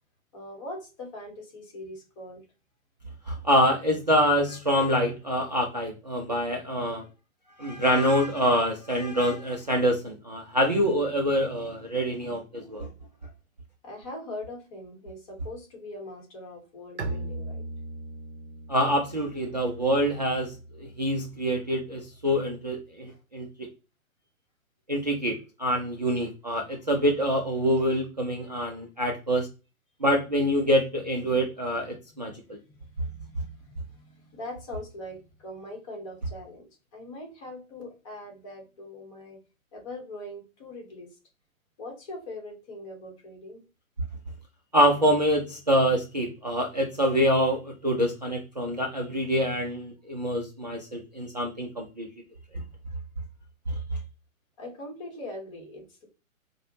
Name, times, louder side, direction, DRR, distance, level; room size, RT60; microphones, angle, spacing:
voice 1, 0.3-2.4 13.8-17.7 23.1-23.2 25.9-26.0 32.7-39.4 39.7-41.1 41.8-43.6 54.6-56.1, left 1 dB, 25° left, 0 dB, 1.0 m, -41 dB
voice 2, 3.3-7.0 7.6-12.9 18.7-23.7 24.9-29.5 30.0-32.6 44.7-52.1 53.7-53.8, equal, 35° right, -1 dB, 0.4 m, -26 dB
Bowed string instrument, 17.0-22.6, right 2 dB, 55° right, 0.8 m, -40 dB
4.6 x 2.1 x 2.7 m, 0.31 s
figure-of-eight pair, 130°, 42 cm